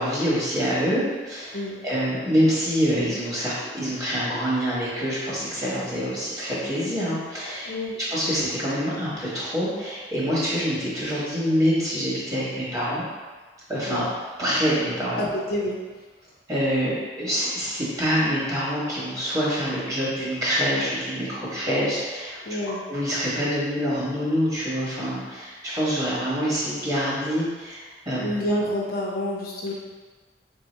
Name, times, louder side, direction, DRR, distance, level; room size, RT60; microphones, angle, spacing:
voice 1, 0.0-7.7 8.0-13.0 13.7-14.1 14.4-15.3 16.5-22.4 22.9-28.3, equal, 20° right, -8 dB, 1.2 m, -26 dB
voice 2, 7.7-8.0 13.9-14.0 15.1-15.8 22.4-22.9 28.2-29.7, left 1 dB, 55° left, -3 dB, 0.7 m, -28 dB
3.4 x 2.7 x 4.4 m, 1.3 s
head